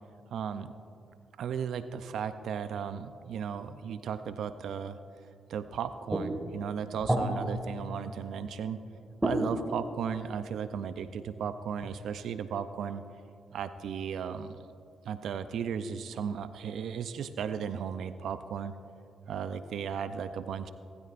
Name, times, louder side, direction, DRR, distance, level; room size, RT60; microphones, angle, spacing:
voice 1, 0.3-0.7 1.4-5.0 5.5-8.8 9.2-13.0 13.5-14.6 15.0-18.7 19.3-20.7, right 7 dB, 75° right, 11 dB, 0.5 m, -35 dB
sound 1, 6.1-8.8 9.2-10.8 11.8-11.9, right 1 dB, 15° right, 1.8 m, -33 dB
19.5 x 12.5 x 2.5 m, 2.5 s
supercardioid pair, 55°, 0 cm